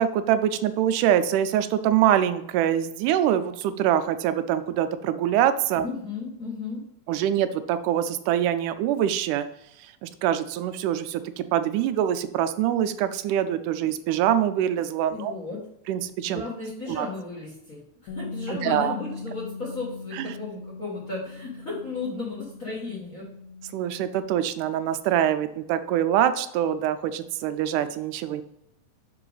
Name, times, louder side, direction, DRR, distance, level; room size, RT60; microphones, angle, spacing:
voice 1, 0.0-5.8 7.1-9.5 10.0-15.3 15.9-16.4 16.9-17.1 18.5-18.9 20.1-20.3 23.7-28.4, right 10 dB, 85° right, 10 dB, 2.1 m, -24 dB
voice 2, 5.8-6.8 15.1-15.6 16.3-23.3, left 3 dB, 35° left, -5 dB, 1.4 m, -34 dB
Bass guitar, 18.1-24.3, left 4 dB, 80° left, 2.2 m, -40 dB
5.8 x 4.9 x 3.9 m, 0.77 s
omnidirectional pair, 3.6 m